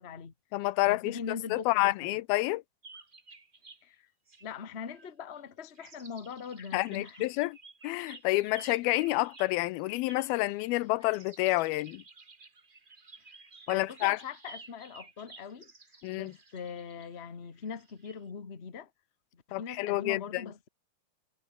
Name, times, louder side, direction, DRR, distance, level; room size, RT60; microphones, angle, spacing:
voice 1, 0.0-0.3 0.9-2.2 3.8-4.1 4.4-7.3 13.4-15.7 16.1-18.9 19.3-20.7, left 6 dB, 35° left, 1.0 m, -42 dB
voice 2, 0.5-1.2 1.5-2.6 6.7-7.6 7.8-12.0 13.7-14.2 16.0-16.3 19.5-20.4, left 20 dB, 90° left, 2.6 m, -29 dB
sound 1, 2.8-3.8 4.3-5.4 5.7-18.2, right 3 dB, 55° right, 0.5 m, -53 dB
omnidirectional pair, 4.2 m